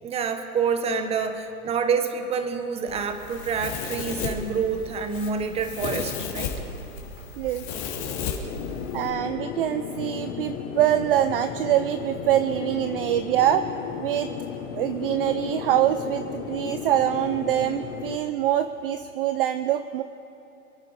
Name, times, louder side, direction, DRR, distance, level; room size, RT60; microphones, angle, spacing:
voice 1, 0.0-6.5, right 6 dB, 15° right, 8 dB, 0.9 m, -27 dB
Domestic sounds home sounds, 2.9-9.1, left 6 dB, 45° left, 2.8 m, -34 dB
sound 1, 8.4-18.2, left 7 dB, 30° left, 1.2 m, -34 dB
voice 2, 8.9-13.6 14.0-14.3 14.8-20.0, right 12 dB, 40° right, 10 dB, 0.5 m, -24 dB
27.5 x 9.7 x 4.9 m, 2.8 s
hypercardioid pair, 140°, 45 cm